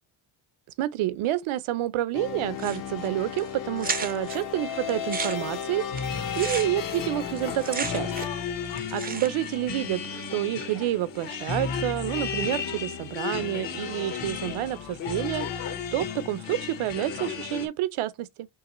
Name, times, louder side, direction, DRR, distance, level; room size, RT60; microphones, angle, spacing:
voice 1, 0.8-6.0 6.4-8.3 8.7-18.5, right 14 dB, 85° right, 0.7 m, -29 dB
sound 1, 2.1-8.3, left 8 dB, 45° left, 0.6 m, -34 dB
sound 2, 2.6-3.1 3.4-3.5 3.8-4.4 4.9-8.4 8.7-9.5, right 5 dB, 20° right, 0.3 m, -34 dB
sound 3, 5.9-17.7, left 7 dB, 65° left, 1.2 m, -34 dB
4.8 x 3.3 x 3.0 m
cardioid pair, 165°, 48 cm